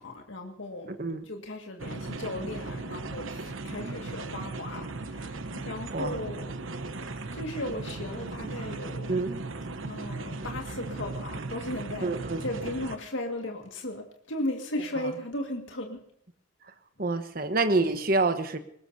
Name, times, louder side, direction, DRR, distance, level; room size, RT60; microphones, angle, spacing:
voice 1, 0.0-0.9 1.3-6.5 7.1-9.1 9.9-12.1 12.4-16.0, left 1 dB, 75° left, 2 dB, 1.9 m, -36 dB
voice 2, 0.9-1.2 5.9-6.1 9.1-9.4 12.0-12.4 17.0-18.6, right 3 dB, 45° right, 8 dB, 1.2 m, -27 dB
sound 1, 1.8-13.0, right 3 dB, 90° right, 1.0 m, -37 dB
22.0 x 19.0 x 2.8 m, 0.70 s
head